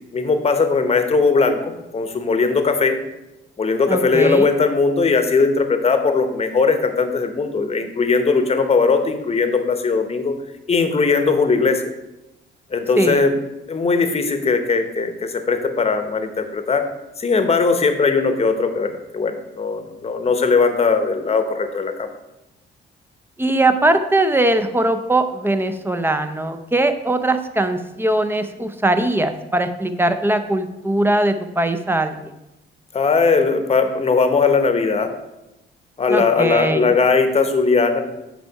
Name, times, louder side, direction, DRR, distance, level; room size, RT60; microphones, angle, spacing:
voice 1, 0.1-3.0 3.6-10.4 10.7-11.8 12.7-13.4 13.7-16.8 17.2-22.1 32.9-35.1 36.0-38.0, left 4 dB, 30° left, 7 dB, 0.9 m, -19 dB
voice 2, 3.9-4.5 13.0-13.3 23.4-32.3 36.1-36.9, right 1 dB, 10° right, 8 dB, 0.6 m, -20 dB
6.8 x 4.6 x 4.6 m, 0.95 s
cardioid pair, 90°, 20 cm